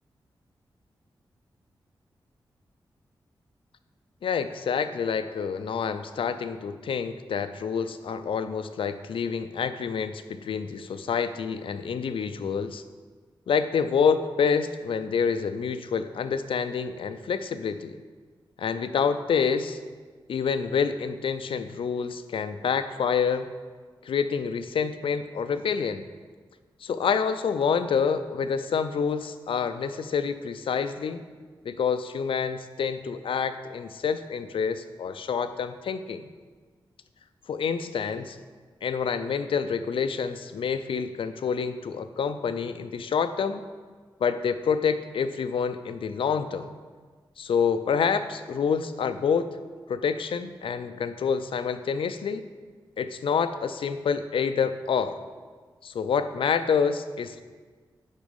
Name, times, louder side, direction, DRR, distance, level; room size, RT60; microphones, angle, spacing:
voice 1, 4.2-12.8 13.5-18.0 18.6-19.8 20.3-23.5 24.0-26.0 26.8-31.2 31.6-36.2 37.5-38.4 38.8-43.6 44.2-46.7 47.4-49.5 49.9-52.4 53.0-55.2 55.8-57.4, left 6 dB, 75° left, 10 dB, 0.5 m, -27 dB
10.5 x 4.1 x 5.4 m, 1.5 s
cardioid pair, 50°, 9 cm